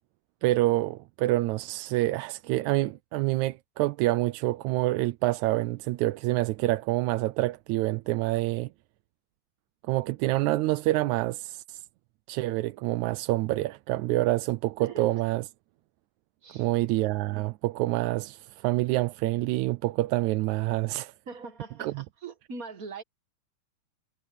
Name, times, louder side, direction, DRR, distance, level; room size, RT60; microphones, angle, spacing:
voice 1, 0.4-8.7 9.9-11.8 12.3-15.5 16.5-21.1 21.8-22.0, right 18 dB, 80° right, 2.0 m, -27 dB
voice 2, 14.8-15.2 16.4-16.8 21.3-23.0, right 5 dB, 45° right, 1.1 m, -41 dB
omnidirectional pair, 3.4 m